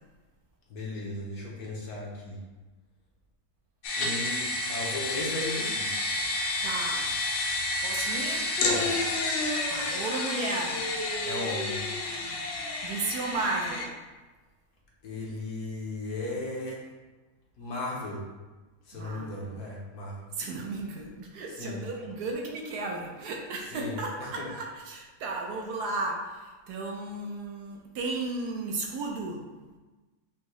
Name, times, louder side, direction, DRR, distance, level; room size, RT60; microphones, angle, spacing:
voice 1, 0.7-2.4 4.0-6.0 8.6-9.1 11.2-11.8 15.0-16.8 17.6-18.3 18.9-20.3 21.5-21.8 23.7-24.5, left 2 dB, 65° left, -4 dB, 1.3 m, -36 dB
sound 1, 3.8-13.9, left 2 dB, 90° left, 1.4 m, -30 dB
voice 2, 6.6-7.1 7.8-8.5 9.7-10.8 12.8-13.9 18.9-19.6 20.4-26.3 26.7-29.5, right 3 dB, 70° right, 0 dB, 1.1 m, -34 dB
5.5 x 2.7 x 3.1 m, 1.2 s
omnidirectional pair, 1.9 m